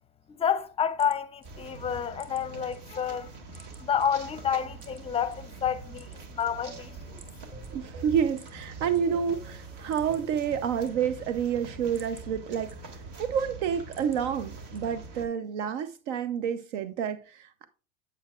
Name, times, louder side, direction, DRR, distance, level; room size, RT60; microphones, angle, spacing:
voice 1, 0.3-3.3 3.6-7.2, left 8 dB, 15° left, 0.6 m, -30 dB
sound 1, 0.6-2.8 3.1-4.1 4.8-5.4 5.8-6.8 7.2-7.4 7.6-7.7 8.3-9.0 9.4-9.5 9.7-10.4 10.7-11.3 11.7-13.2 13.6-14.2 14.7-15.2, right 2 dB, 15° right, 2.0 m, -55 dB
sound 2, 1.4-15.3, right 3 dB, 55° right, 2.5 m, -44 dB
sound 3, 6.7-11.8, right 2 dB, 35° right, 2.8 m, -48 dB
voice 2, 7.7-12.7 13.2-17.6, right 8 dB, 70° right, 0.8 m, -29 dB
8.6 x 8.6 x 2.4 m
supercardioid pair, 115°, 36 cm